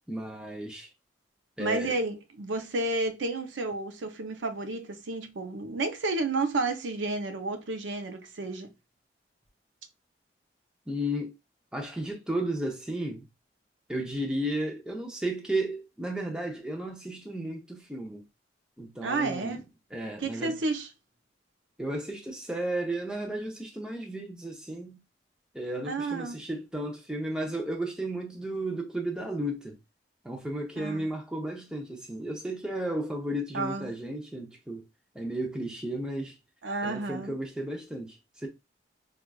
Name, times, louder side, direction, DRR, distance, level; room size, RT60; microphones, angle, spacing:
voice 1, 0.1-0.9 1.6-1.9 10.9-11.3 11.7-13.3 13.9-18.2 18.8-19.6 19.9-20.6 21.8-25.0 25.5-29.8 30.2-34.8 35.1-36.3 36.8-38.5, right 1 dB, 5° right, 0.6 m, -33 dB
voice 2, 1.6-8.7 19.0-19.6 20.2-20.9 25.9-26.4 30.8-31.1 33.5-33.9 36.6-37.3, right 3 dB, 85° right, 0.6 m, -31 dB
4.5 x 2.4 x 2.3 m
head